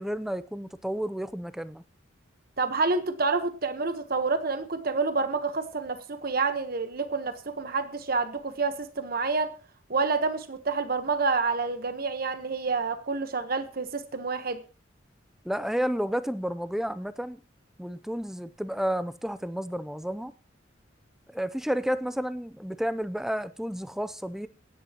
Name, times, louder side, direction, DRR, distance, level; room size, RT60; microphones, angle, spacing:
voice 1, 0.0-1.8 15.4-17.4 17.8-20.3 21.3-24.5, equal, ahead, 0.5 m, -31 dB
voice 2, 2.6-9.5 9.9-14.6, right 4 dB, 50° right, 1.2 m, -28 dB
23.5 x 9.9 x 3.0 m
head